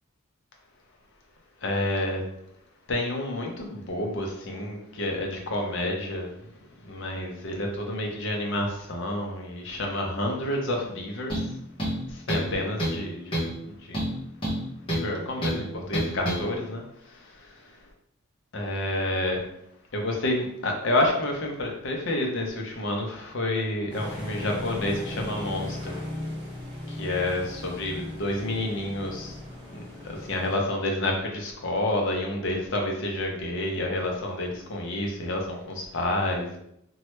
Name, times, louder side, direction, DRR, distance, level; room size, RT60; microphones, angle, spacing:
voice 1, 1.6-2.2 2.9-6.3 6.8-11.5 12.1-14.1 14.8-16.8 17.1-17.3 18.5-19.5 19.9-26.0 26.9-29.4 29.7-36.6, left 1 dB, 55° left, 1 dB, 0.6 m, -29 dB
sound 1, 11.3-11.5 11.8-12.5 12.8-13.0 13.3-13.6 13.9-15.1 15.4-15.6 15.9-16.4, right 1 dB, 25° left, 0.8 m, -28 dB
sound 2, 23.9-30.5, left 1 dB, 20° right, 0.8 m, -37 dB
3.1 x 2.2 x 3.0 m, 0.76 s
head